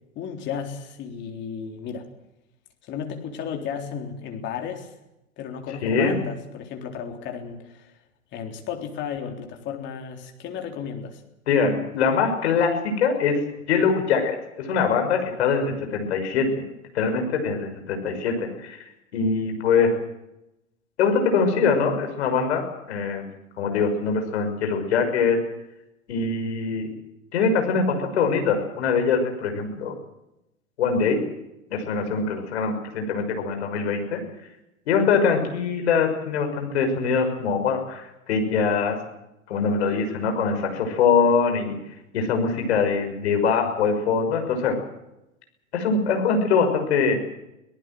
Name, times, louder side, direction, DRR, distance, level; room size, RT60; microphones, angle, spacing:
voice 1, 0.2-2.1 2.9-4.9 5.4-7.9 8.3-11.2, left 7 dB, 25° left, 3 dB, 3.7 m, -33 dB
voice 2, 5.8-6.2 11.5-16.6 16.9-18.8 19.1-19.9 21.0-23.3 23.6-25.4 26.1-26.9 27.3-29.9 30.8-31.2 31.7-34.2 34.9-39.0 39.5-41.8 42.1-44.8 45.7-47.3, left 5 dB, 50° left, 5 dB, 6.2 m, -23 dB
24.5 x 18.5 x 7.8 m, 0.91 s
figure-of-eight pair, 110°, 41 cm